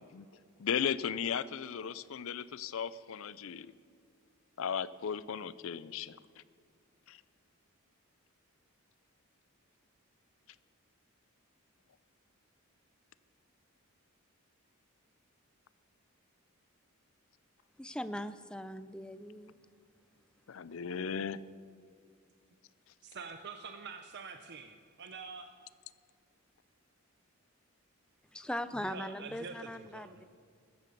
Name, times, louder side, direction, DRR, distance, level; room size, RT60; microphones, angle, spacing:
voice 1, 0.6-3.7 4.6-6.2 7.1-7.2 20.5-21.4, left 7 dB, 65° left, 17 dB, 0.5 m, -36 dB
voice 2, 17.8-19.6 28.3-30.2, left 1 dB, 5° left, 13 dB, 0.4 m, -40 dB
voice 3, 23.0-25.5 28.8-30.2, right 5 dB, 50° right, 6 dB, 0.6 m, -46 dB
15.0 x 13.5 x 5.3 m, 2.2 s
head